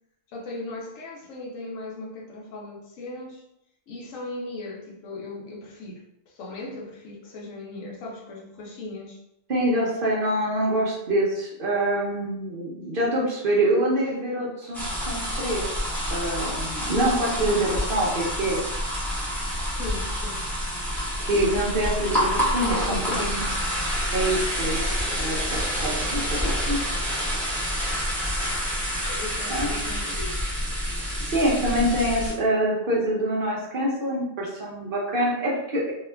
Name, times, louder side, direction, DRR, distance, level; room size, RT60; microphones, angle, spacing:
voice 1, 0.3-3.4 3.9-9.2 14.6-14.7 17.4-17.6 19.7-20.4 22.6-23.5 29.1-30.6, left 2 dB, 85° left, -1 dB, 1.1 m, -37 dB
voice 2, 9.5-15.8 16.1-18.6 21.2-23.4 24.1-24.8 25.2-26.8 29.5-29.9 31.2-35.9, right 1 dB, 50° right, -4 dB, 0.8 m, -25 dB
sound 1, 14.7-32.3, equal, ahead, 0.8 m, -28 dB
2.8 x 2.3 x 3.3 m, 0.79 s
omnidirectional pair, 1.3 m